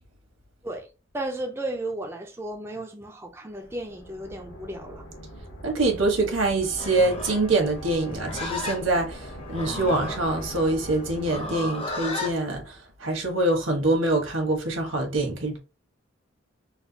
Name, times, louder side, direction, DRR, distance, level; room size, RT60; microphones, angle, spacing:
voice 1, 1.1-5.0, right 1 dB, 10° right, 0.4 m, -34 dB
sound 1, 3.6-12.1, right 1 dB, 70° left, 1.3 m, -41 dB
voice 2, 5.6-15.6, right 2 dB, 85° right, 1.3 m, -25 dB
Livestock farm animals working animals, 6.7-12.4, left 2 dB, 30° left, 0.7 m, -35 dB
4.0 x 2.3 x 2.8 m
head